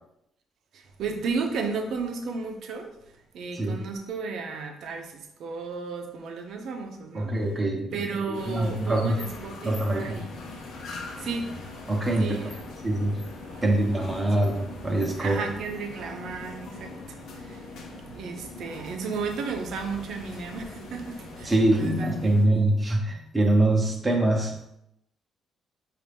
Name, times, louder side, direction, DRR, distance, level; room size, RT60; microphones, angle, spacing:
voice 1, 0.7-2.9 3.3-7.3 7.9-10.3 11.2-11.6 12.2-12.6 13.5-13.6 15.2-17.6 17.9-22.4, right 4 dB, 75° right, 5 dB, 0.6 m, -34 dB
voice 2, 7.1-8.0 8.3-9.2 9.6-10.2 11.9-12.5 12.8-13.2 13.6-15.5 21.4-24.6, right 1 dB, 20° right, 0 dB, 0.9 m, -24 dB
sound 1, 8.3-22.5, left 2 dB, 80° left, 0.7 m, -41 dB
5.1 x 2.5 x 3.4 m, 0.82 s
cardioid pair, 90°, 0 cm